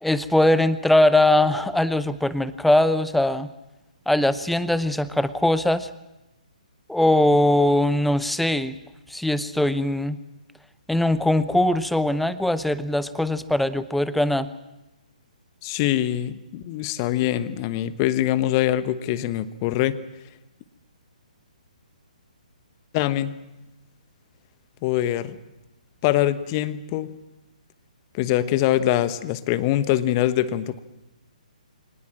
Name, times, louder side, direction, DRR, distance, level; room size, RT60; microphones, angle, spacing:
voice 1, 0.0-3.5 4.1-5.9 6.9-8.8 9.1-10.2 10.9-14.5, left 1 dB, ahead, 15 dB, 0.8 m, -21 dB
voice 2, 15.6-20.0 22.9-23.3 24.8-25.3 26.0-27.2 28.1-30.8, left 13 dB, 30° left, 14 dB, 1.1 m, -23 dB
24.0 x 19.5 x 7.6 m, 0.95 s
figure-of-eight pair, 130°, 4 cm